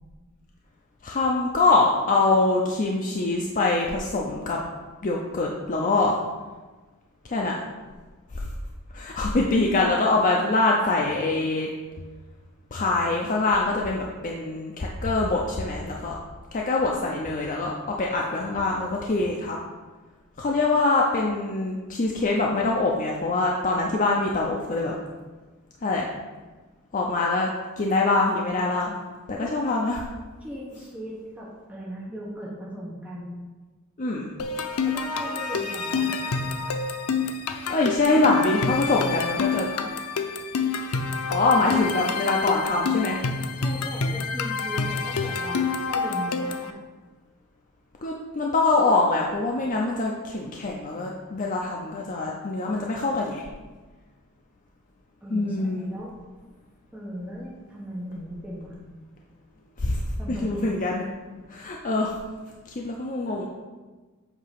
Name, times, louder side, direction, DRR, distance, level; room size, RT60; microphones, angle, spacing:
voice 1, 1.0-4.6 5.0-6.2 7.2-7.5 8.3-8.5 8.9-11.7 12.7-16.1 16.5-17.7 18.0-19.6 20.4-24.9 25.8-26.1 26.9-29.0 29.3-30.0 34.0-34.3 37.7-39.7 41.3-43.2 48.0-53.4 55.3-55.8 59.8-60.0 60.3-61.0 61.5-62.1 62.7-63.4, left 3 dB, 35° left, -1 dB, 0.5 m, -24 dB
voice 2, 30.4-33.3 34.8-36.1 43.6-46.8 55.2-56.1 56.9-58.8 60.2-60.7, equal, 5° right, -6 dB, 1.0 m, -38 dB
sound 1, 34.4-46.7, left 4 dB, 90° left, 0.5 m, -28 dB
8.0 x 2.8 x 5.7 m, 1.3 s
head